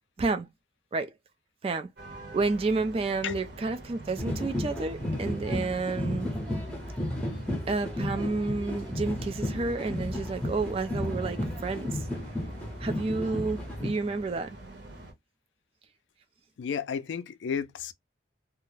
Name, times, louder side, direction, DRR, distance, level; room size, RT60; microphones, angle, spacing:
sound 1, 2.0-15.1, right 1 dB, 60° right, 0.9 m, -45 dB
voice 1, 2.3-6.3 7.7-12.0 12.8-14.6, right 3 dB, 30° right, 0.3 m, -30 dB
sound 2, 4.2-13.9, left 1 dB, 5° left, 0.7 m, -33 dB
voice 2, 16.6-17.9, left 7 dB, 75° left, 0.3 m, -32 dB
2.3 x 2.0 x 3.0 m
head